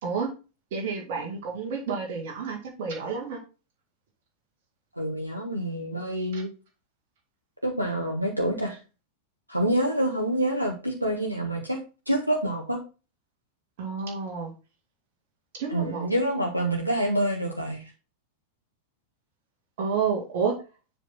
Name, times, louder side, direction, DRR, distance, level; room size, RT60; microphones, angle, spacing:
voice 1, 0.7-3.4 6.3-6.4 13.8-14.5 15.5-16.1 19.8-20.6, right 5 dB, 50° right, 0 dB, 2.2 m, -30 dB
voice 2, 5.0-6.5 7.6-8.8 9.5-12.8 15.7-17.9, right 1 dB, 90° right, 1 dB, 1.2 m, -27 dB
7.2 x 5.5 x 4.3 m, 0.31 s
figure-of-eight pair, 90°, 0 cm